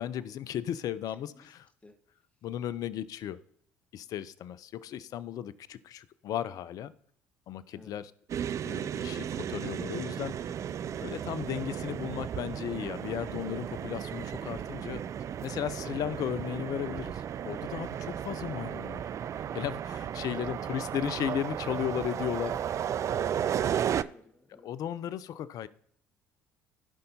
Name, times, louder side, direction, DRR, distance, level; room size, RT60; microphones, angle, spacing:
voice 1, 0.0-1.7 2.4-3.4 3.9-6.9 7.5-8.1 8.6-10.5 11.0-15.0 15.4-19.0 19.5-22.5 24.6-25.7, left 10 dB, 60° left, 17 dB, 0.5 m, -35 dB
voice 2, 1.1-1.5 1.8-1.9 7.7-7.9 22.5-24.7, left 2 dB, 15° left, 6 dB, 1.3 m, -54 dB
sound 1, 8.3-24.0, right 9 dB, 45° right, 0.3 m, -34 dB
15.0 x 5.4 x 2.7 m, 0.66 s
hypercardioid pair, 55°, 7 cm